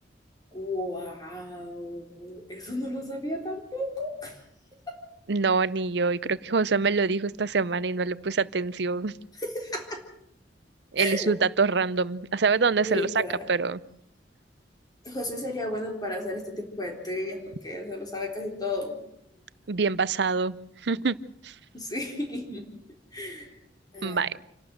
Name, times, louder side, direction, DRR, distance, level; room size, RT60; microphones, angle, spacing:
voice 1, 0.5-4.4 4.9-5.0 9.3-10.0 11.0-11.4 12.8-13.5 15.0-19.0 21.7-22.6 23.1-23.5 23.9-24.2, left 1 dB, 20° left, 1 dB, 3.9 m, -33 dB
voice 2, 5.3-9.1 10.9-13.1 13.5-13.8 19.7-20.5 20.8-21.2 21.4-21.5 24.0-24.3, right 4 dB, 65° right, 18 dB, 0.7 m, -25 dB
27.5 x 12.0 x 7.8 m, 0.75 s
head